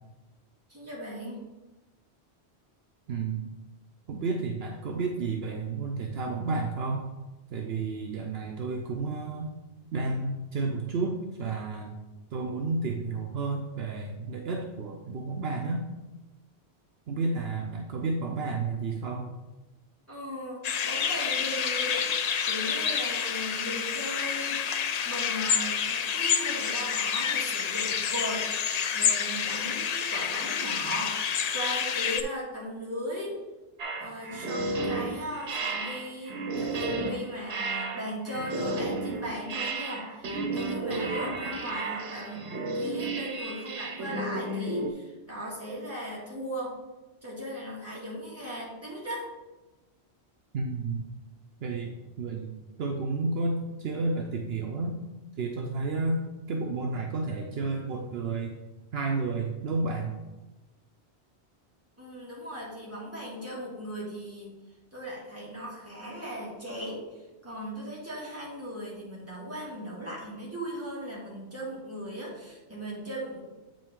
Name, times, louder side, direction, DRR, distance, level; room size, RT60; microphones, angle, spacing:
voice 1, 0.7-1.4 20.1-22.0 22.5-24.6 25.0-33.4 34.0-42.5 42.7-46.8 47.2-49.3 62.0-64.5 64.9-73.4, equal, 15° right, -6 dB, 2.2 m, -38 dB
voice 2, 3.1-3.4 4.1-7.0 7.5-9.5 9.9-12.0 12.3-15.8 17.1-19.3 50.5-51.0 51.6-52.5 52.8-55.0 55.4-56.2 56.5-58.5 58.9-60.1, right 3 dB, 70° right, 2 dB, 0.9 m, -31 dB
sound 1, 20.6-32.2, left 7 dB, 55° left, 0.4 m, -28 dB
sound 2, 33.8-44.9, right 2 dB, 85° right, 1.2 m, -33 dB
8.0 x 5.1 x 3.7 m, 1.1 s
omnidirectional pair, 1.1 m